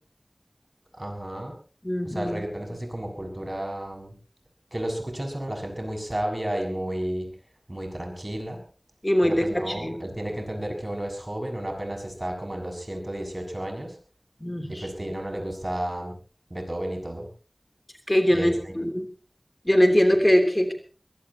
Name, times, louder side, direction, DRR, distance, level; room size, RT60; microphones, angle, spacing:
voice 1, 0.9-1.5 2.0-4.2 4.7-7.3 7.7-8.6 9.2-14.0 14.7-16.2 16.5-17.3 18.3-18.7, right 1 dB, 40° right, 2 dB, 6.9 m, -32 dB
voice 2, 1.8-2.4 9.0-9.9 14.4-14.7 18.1-19.0 19.7-20.7, equal, 25° left, 5 dB, 3.2 m, -21 dB
23.0 x 21.0 x 2.9 m, 0.37 s
wide cardioid pair, 40°, 0 cm